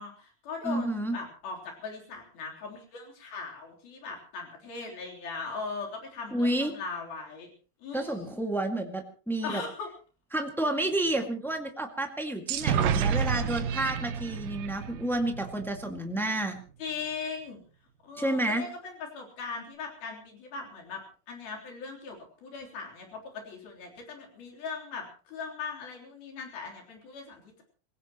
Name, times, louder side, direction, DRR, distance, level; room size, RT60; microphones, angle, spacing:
voice 1, 0.0-7.5 7.8-8.3 9.4-9.9 16.8-17.6 18.0-27.6, left 4 dB, 75° left, 0 dB, 5.5 m, -39 dB
voice 2, 0.6-1.2 6.3-6.7 7.9-9.6 10.3-16.6 18.2-18.6, right 1 dB, ahead, 3 dB, 0.5 m, -30 dB
sound 1, 12.5-16.2, right 7 dB, 70° right, 2.5 m, -30 dB
26.5 x 17.0 x 3.1 m, 0.37 s
omnidirectional pair, 4.3 m